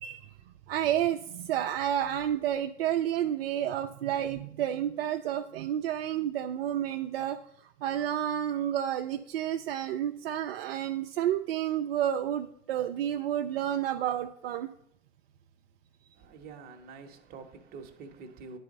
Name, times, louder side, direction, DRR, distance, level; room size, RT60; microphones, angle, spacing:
voice 1, 0.0-0.4 0.7-14.7, right 11 dB, 55° right, 0.5 m, -30 dB
voice 2, 16.1-18.6, right 4 dB, 25° right, 0.9 m, -46 dB
9.6 x 4.1 x 5.2 m
hypercardioid pair, 115°, 35 cm